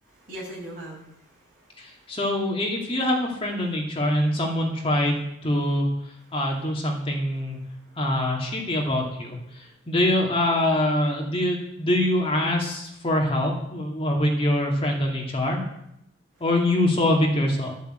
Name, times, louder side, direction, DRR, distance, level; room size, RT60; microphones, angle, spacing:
voice 1, 0.0-2.2 6.2-6.4 7.1-8.1 16.3-16.5, right 1 dB, 45° right, -5 dB, 7.0 m, -43 dB
voice 2, 1.8-5.9 6.3-7.6 8.0-15.6 16.4-17.7, left 1 dB, 30° left, 0 dB, 2.3 m, -24 dB
12.5 x 8.3 x 7.9 m, 0.79 s
head